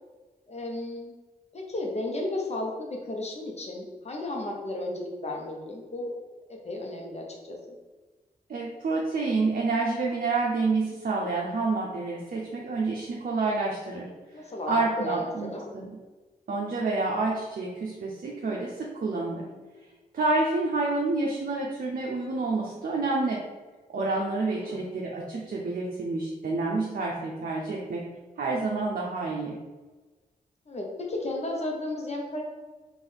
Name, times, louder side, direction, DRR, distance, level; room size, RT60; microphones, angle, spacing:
voice 1, 0.5-1.1 1.5-6.2 6.5-7.8 14.3-15.7 24.6-24.9 30.7-32.4, left 1 dB, 40° left, 0 dB, 0.9 m, -34 dB
voice 2, 8.5-14.1 14.4-16.0 16.5-19.5 20.1-23.4 23.9-28.0 28.4-29.6, right 3 dB, 60° right, -2 dB, 0.6 m, -28 dB
3.7 x 2.5 x 3.5 m, 1.3 s
cardioid pair, 55°, 16 cm